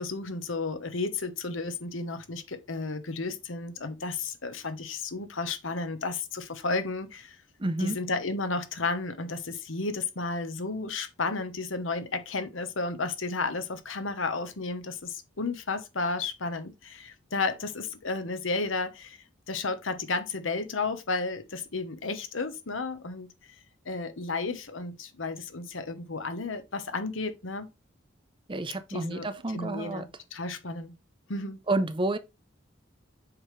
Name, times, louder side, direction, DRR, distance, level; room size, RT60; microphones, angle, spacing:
voice 1, 0.0-7.4 7.8-19.2 19.5-23.5 23.8-27.7 28.9-29.3 29.5-30.1 30.3-31.0 31.3-31.6, left 3 dB, 90° left, 1.1 m, -33 dB
voice 2, 7.6-8.0 28.5-30.1 31.7-32.2, right 2 dB, 25° right, 0.7 m, -29 dB
7.1 x 5.1 x 3.3 m
head